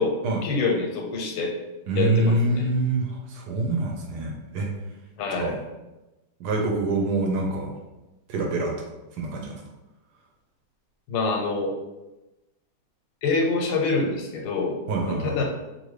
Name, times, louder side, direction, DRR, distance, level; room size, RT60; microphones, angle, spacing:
voice 1, 0.4-1.5 2.0-2.7 5.2-5.5 11.1-11.8 13.2-14.8 15.1-15.4, left 4 dB, 90° left, 1 dB, 1.4 m, -26 dB
voice 2, 1.9-4.7 5.4-5.6 6.4-7.7 8.3-8.7 9.1-9.6 14.9-15.4, right 2 dB, 75° right, 1 dB, 1.1 m, -25 dB
2.9 x 2.6 x 3.1 m, 1.0 s
omnidirectional pair, 1.9 m